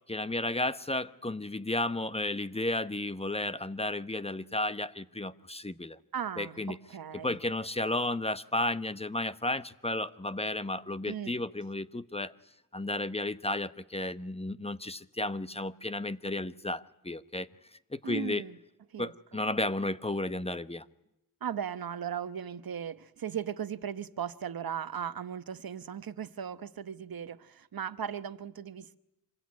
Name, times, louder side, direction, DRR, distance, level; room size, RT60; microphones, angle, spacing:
voice 1, 0.1-6.0 6.4-6.8 7.2-12.3 12.7-17.5 17.9-18.4 19.0-20.8, left 2 dB, 15° left, 1.0 m, -33 dB
voice 2, 6.1-7.4 11.0-11.4 18.0-18.6 18.9-19.1 21.4-29.0, right 8 dB, 80° right, 1.2 m, -37 dB
26.5 x 22.0 x 9.7 m
wide cardioid pair, 90°, 35 cm